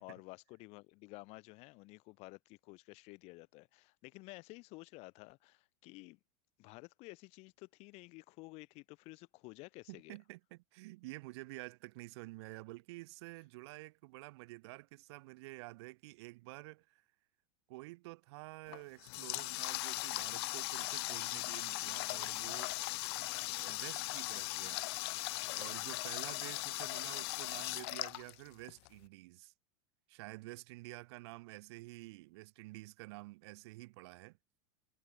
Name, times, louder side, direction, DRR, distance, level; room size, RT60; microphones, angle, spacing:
voice 1, 0.0-6.2 6.6-10.2, left 24 dB, 45° left, 1.2 m, -53 dB
voice 2, 9.9-17.0 17.7-22.7 23.5-24.9 25.5-29.5 30.1-34.4, right 22 dB, 65° right, 0.4 m, -50 dB
Water tap faucet, 18.7-28.9, left 24 dB, 60° left, 0.4 m, -39 dB
supercardioid pair, 150°, 15 cm